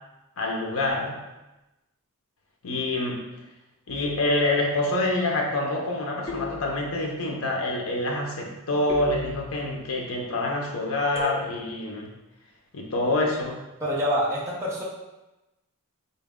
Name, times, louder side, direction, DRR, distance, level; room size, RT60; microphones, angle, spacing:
voice 1, 0.4-1.2 2.6-3.3 3.9-12.1 12.7-13.6, left 2 dB, 65° left, 0 dB, 0.6 m, -26 dB
sound 1, 6.3-7.2 8.9-9.8 11.1-11.9, left 3 dB, 25° left, 0.6 m, -38 dB
voice 2, 13.8-14.8, equal, 15° right, -6 dB, 0.6 m, -26 dB
4.0 x 2.1 x 3.5 m, 1.0 s
head